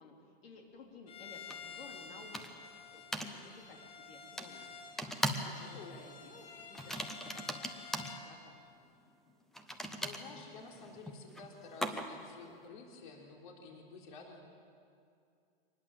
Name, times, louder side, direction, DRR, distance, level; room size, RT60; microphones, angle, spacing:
voice 1, 0.0-2.4 2.9-4.7 5.4-7.7 8.2-8.6, left 4 dB, 80° left, 1 dB, 3.6 m, -55 dB
Bowed string instrument, 1.1-8.3, left 5 dB, 25° left, 2.2 m, -51 dB
sound 1, 1.5-1.6 2.3-2.7 3.1-3.3 4.4-4.5 5.0-5.6 5.8-6.1 6.7-8.2 9.5-12.3, equal, ahead, 0.5 m, -39 dB
voice 2, 5.4-6.0 10.0-14.5, left 4 dB, 55° left, 0 dB, 3.7 m, -51 dB
24.5 x 20.0 x 7.4 m, 2.4 s
supercardioid pair, 170°, 29 cm